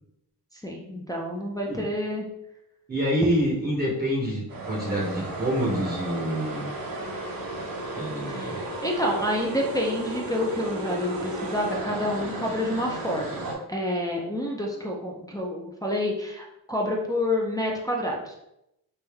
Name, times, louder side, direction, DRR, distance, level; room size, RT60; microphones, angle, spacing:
voice 1, 0.6-2.2 8.3-8.5 8.8-18.3, left 1 dB, 10° left, -3 dB, 0.6 m, -28 dB
voice 2, 2.9-6.7 7.9-8.6, equal, 25° right, -3 dB, 0.9 m, -27 dB
sound 1, 4.5-13.5, right 2 dB, 60° right, 0.9 m, -34 dB
3.4 x 2.6 x 3.4 m, 0.84 s
cardioid pair, 90°, 40 cm